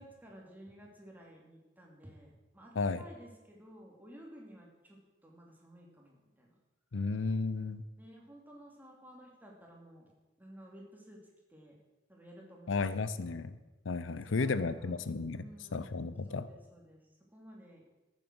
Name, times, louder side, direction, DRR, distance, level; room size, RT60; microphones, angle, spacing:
voice 1, 0.0-6.5 8.0-10.1 10.4-11.2 11.5-11.8 12.1-12.9 13.2-13.4 14.1-16.0 16.3-17.0 17.3-17.9, equal, 10° right, -1 dB, 2.6 m, -54 dB
voice 2, 6.9-7.8 12.7-13.6 13.9-15.4 15.7-16.5, left 4 dB, 85° left, 14 dB, 0.6 m, -33 dB
14.0 x 7.4 x 6.1 m, 1.1 s
head